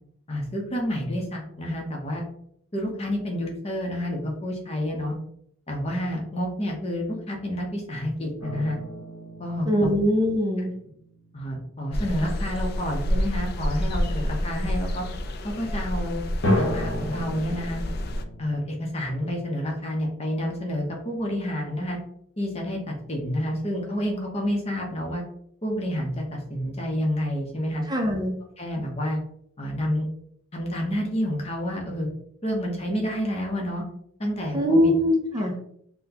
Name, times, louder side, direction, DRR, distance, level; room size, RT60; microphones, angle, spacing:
voice 1, 0.3-2.3 2.7-5.2 5.7-8.8 9.4-9.9 11.3-15.0 15.4-16.2 16.5-17.8 18.4-22.0 22.4-25.2 25.6-27.8 28.6-29.2 29.6-30.1 30.5-32.1 32.4-33.8 34.2-34.9 35.4-35.7, equal, 30° left, 0 dB, 0.7 m, -29 dB
sound 1, 8.4-11.5 16.4-20.1, left 1 dB, 70° left, 0.8 m, -32 dB
voice 2, 9.7-10.7 27.9-28.4 34.5-35.6, equal, 20° right, 0 dB, 0.5 m, -22 dB
sound 2, 11.9-18.2, equal, 50° left, 0.3 m, -29 dB
4.1 x 2.2 x 2.8 m, 0.70 s
head